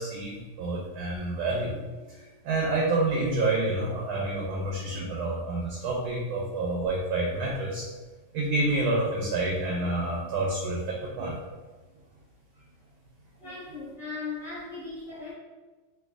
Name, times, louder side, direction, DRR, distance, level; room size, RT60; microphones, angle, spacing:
voice 1, 0.0-7.9 8.3-11.4 13.4-13.5, right 2 dB, 75° right, -2 dB, 1.3 m, -28 dB
voice 2, 13.4-15.3, left 4 dB, ahead, -10 dB, 0.9 m, -38 dB
3.4 x 3.1 x 2.3 m, 1.3 s
omnidirectional pair, 2.4 m